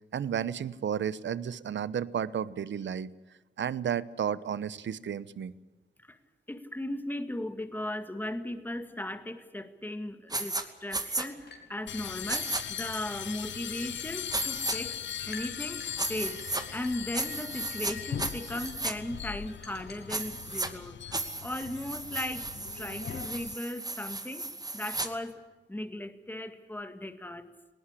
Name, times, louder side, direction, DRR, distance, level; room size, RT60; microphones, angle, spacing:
voice 1, 0.1-3.1 3.6-5.5, right 8 dB, 80° right, 17 dB, 0.9 m, -32 dB
voice 2, 6.5-15.0 15.3-25.4 25.7-27.5, left 1 dB, 10° left, 9 dB, 2.0 m, -37 dB
sound 1, 10.3-10.6 10.9-11.3 12.3-12.6 14.3-14.8 16.0-16.6 17.1-17.9 18.2-18.9 20.1-20.7 21.1-25.1, right 2 dB, 20° right, 2.5 m, -34 dB
sound 2, 11.1-20.8, left 3 dB, 60° left, 4.9 m, -53 dB
sound 3, 11.9-23.5, left 9 dB, 80° left, 0.7 m, -40 dB
19.5 x 18.5 x 9.9 m, 1.2 s
cardioid pair, 80°, 19 cm